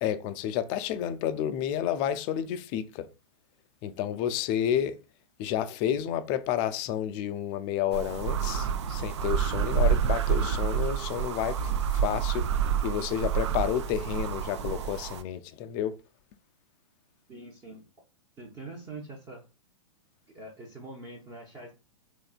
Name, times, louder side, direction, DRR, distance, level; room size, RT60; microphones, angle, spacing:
voice 1, 0.0-3.1 3.8-5.0 5.4-16.0, left 10 dB, 30° left, 0.4 m, -30 dB
sound 1, 7.9-15.2, right 8 dB, 55° right, 0.5 m, -28 dB
voice 2, 17.3-17.9 18.4-19.4 20.3-21.7, right 2 dB, 20° right, 0.7 m, -44 dB
3.5 x 3.2 x 2.3 m
figure-of-eight pair, 110°, 17 cm